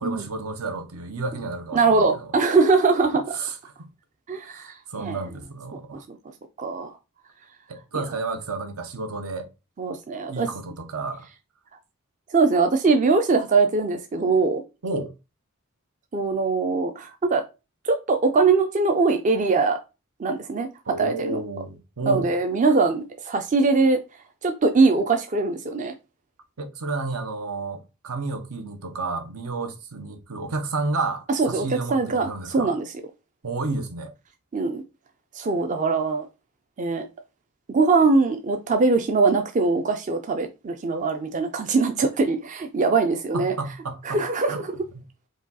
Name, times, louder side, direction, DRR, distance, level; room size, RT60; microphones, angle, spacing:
voice 1, 0.0-2.3 3.3-3.6 4.5-4.6 4.9-6.0 7.7-9.5 10.3-11.3 14.8-15.1 20.9-22.3 26.6-32.7 33.4-34.1 43.3-44.6 44.9-45.0, right 3 dB, 75° right, 0.8 m, -31 dB
voice 2, 1.7-3.4 4.3-5.2 6.1-6.2 6.6-6.9 9.8-10.5 12.3-14.6 16.1-17.4 17.8-19.8 20.2-21.4 22.1-24.0 24.4-25.9 31.4-32.9 34.5-34.8 35.3-36.3 36.8-37.0 37.7-43.5 44.0-44.7, right 4 dB, 35° right, 0.4 m, -22 dB
4.9 x 2.3 x 4.0 m
head